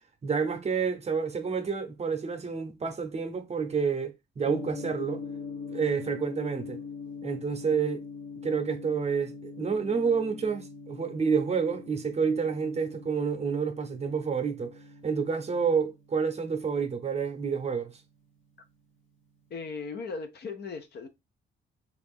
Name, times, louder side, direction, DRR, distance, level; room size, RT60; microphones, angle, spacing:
voice 1, 0.2-5.2 5.7-6.8 7.2-8.0 8.4-17.9, right 5 dB, 35° right, 0.7 m, -29 dB
Gong, 4.4-18.6, left 4 dB, 85° left, 1.0 m, -43 dB
voice 2, 19.5-21.1, left 4 dB, 55° left, 0.7 m, -37 dB
2.9 x 2.5 x 3.5 m
cardioid pair, 90°, 20 cm